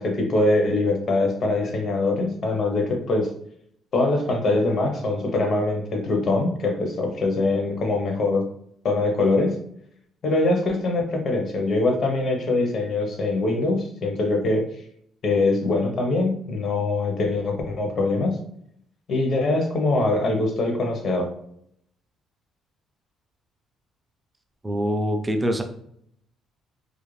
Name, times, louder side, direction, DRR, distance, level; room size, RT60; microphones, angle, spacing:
voice 1, 0.0-3.3 3.9-8.5 8.8-9.6 10.2-14.7 15.2-18.4 19.1-21.3, left 2 dB, 45° left, 3 dB, 0.6 m, -23 dB
voice 2, 24.6-25.6, equal, 10° right, 4 dB, 0.3 m, -24 dB
2.4 x 2.0 x 3.1 m, 0.69 s
cardioid pair, 150°, 0 cm